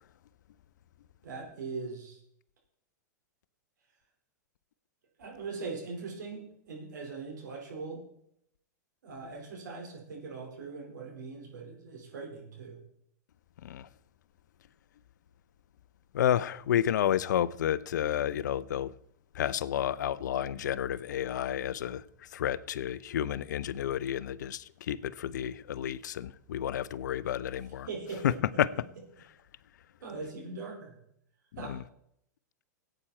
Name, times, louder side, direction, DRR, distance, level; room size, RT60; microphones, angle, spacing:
voice 1, 1.2-2.2 5.2-8.1 9.0-12.8 27.9-28.6 30.0-31.0 31.6-31.8, right 4 dB, 75° right, 4.6 m, -41 dB
voice 2, 16.1-18.9 19.3-22.0 22.3-27.9 28.2-28.3 28.6-28.7 31.6-31.8, left 10 dB, 75° left, 0.6 m, -30 dB
16.5 x 9.0 x 4.4 m
hypercardioid pair, 115°, 10 cm